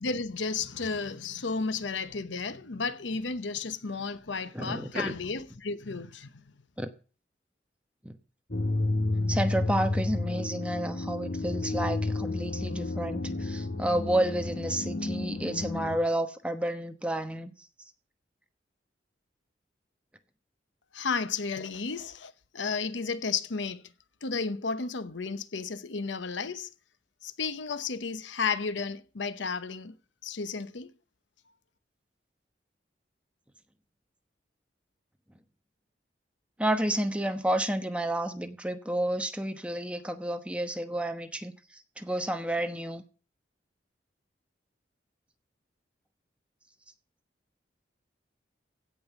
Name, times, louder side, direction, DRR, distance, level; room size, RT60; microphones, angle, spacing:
voice 1, 0.0-6.5 20.9-23.9 24.2-26.7 27.2-29.9 30.2-30.9, left 4 dB, 85° left, 0.9 m, -33 dB
voice 2, 4.5-5.2 6.8-6.9 8.0-8.2 9.3-17.7 36.6-43.0, right 1 dB, 5° right, 1.0 m, -30 dB
sound 1, 8.5-16.0, left 2 dB, 55° left, 1.3 m, -31 dB
16.0 x 5.5 x 8.0 m
head